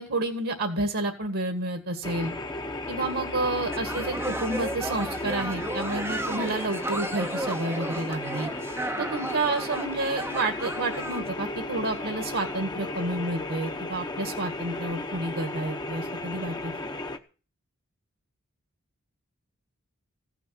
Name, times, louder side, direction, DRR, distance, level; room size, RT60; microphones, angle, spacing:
voice 1, 0.0-2.3 2.9-8.5 9.0-16.7, right 2 dB, 65° right, 5 dB, 2.0 m, -30 dB
sound 1, 2.0-17.2, left 2 dB, 20° left, 1.0 m, -35 dB
sound 2, 3.7-11.2, right 2 dB, 10° right, 0.8 m, -34 dB
16.0 x 7.1 x 7.6 m, 0.37 s
head